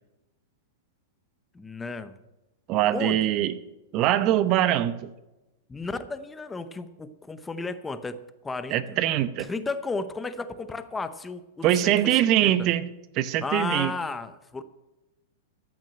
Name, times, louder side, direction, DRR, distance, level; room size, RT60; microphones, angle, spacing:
voice 1, 1.5-2.2 2.9-3.2 5.7-9.0 9.5-12.5 13.4-14.6, left 3 dB, 10° left, 12 dB, 0.7 m, -34 dB
voice 2, 2.7-3.6 3.9-5.1 8.7-9.5 11.6-12.9 13.1-13.9, right 12 dB, 40° right, 14 dB, 0.8 m, -23 dB
14.5 x 6.2 x 8.8 m, 1.0 s
hypercardioid pair, 130°, 0 cm